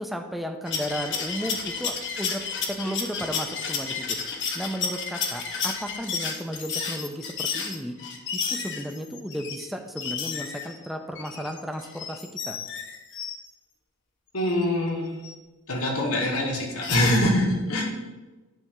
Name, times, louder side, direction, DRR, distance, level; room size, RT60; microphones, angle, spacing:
voice 1, 0.0-2.4 2.7-7.9 8.3-12.6, equal, ahead, 4 dB, 0.6 m, -34 dB
sound 1, 0.7-9.7 10.0-13.4 14.5-14.6 15.2-15.3 16.6-17.2, left 6 dB, 55° left, 1.1 m, -32 dB
voice 2, 14.3-15.1 15.7-17.8, left 1 dB, 70° left, -1 dB, 1.9 m, -24 dB
10.0 x 3.5 x 6.8 m, 1.2 s
head